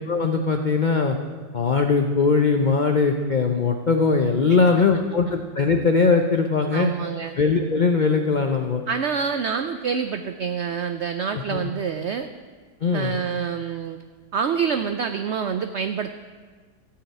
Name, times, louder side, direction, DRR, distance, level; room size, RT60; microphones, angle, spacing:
voice 1, 0.1-1.2 1.5-6.9 7.3-8.8 11.3-11.7 12.8-13.2, left 4 dB, 85° left, 4 dB, 0.4 m, -20 dB
voice 2, 6.7-7.4 8.9-12.3 12.9-14.0 14.3-16.1, right 6 dB, 90° right, 8 dB, 0.6 m, -26 dB
14.0 x 4.8 x 8.9 m, 1.5 s
omnidirectional pair, 1.8 m